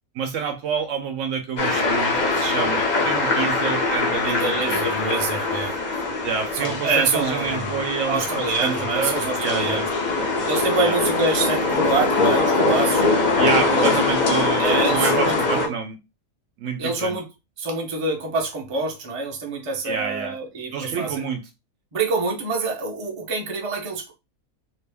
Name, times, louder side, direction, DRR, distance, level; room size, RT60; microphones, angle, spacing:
voice 1, 0.1-5.0 6.2-8.2 8.6-9.8 10.8-11.0 13.4-16.0 16.6-17.2 19.8-20.4 20.7-21.4, right 6 dB, 70° right, 0.9 m, -28 dB
sound 1, 1.6-15.7, left 3 dB, 50° left, 0.5 m, -22 dB
voice 2, 4.2-5.8 6.5-9.8 10.5-13.0 13.7-14.0 14.6-15.7 16.8-17.3 17.6-21.2 21.9-24.2, right 3 dB, 35° right, 0.6 m, -26 dB
2.9 x 2.5 x 3.3 m
omnidirectional pair, 1.5 m